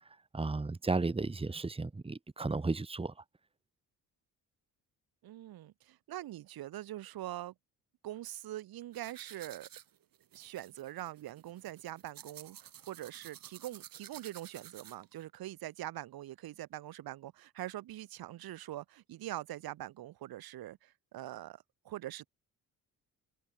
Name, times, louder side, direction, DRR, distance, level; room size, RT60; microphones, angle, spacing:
voice 1, 0.3-3.1, right 3 dB, 15° right, 1.7 m, -34 dB
voice 2, 5.2-7.5 8.0-9.7 10.3-22.3, right 14 dB, 90° right, 3.7 m, -43 dB
sound 1, 8.9-15.2, right 10 dB, 70° right, 7.5 m, -53 dB
cardioid pair, 105°, 35 cm